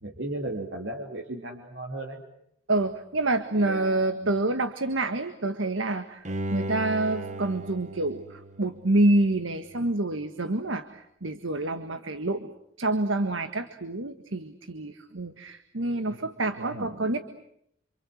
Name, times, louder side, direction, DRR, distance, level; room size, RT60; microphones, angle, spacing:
voice 1, 0.0-2.2 3.5-4.3 15.9-16.2 16.6-17.1, right 1 dB, 65° right, 1 dB, 3.2 m, -36 dB
voice 2, 2.7-6.2 6.5-12.5 12.8-17.2, right 2 dB, 80° right, 9 dB, 1.6 m, -27 dB
Bowed string instrument, 6.3-9.4 9.8-9.9, right 1 dB, 35° right, 1.4 m, -36 dB
28.0 x 27.5 x 7.9 m, 0.74 s
head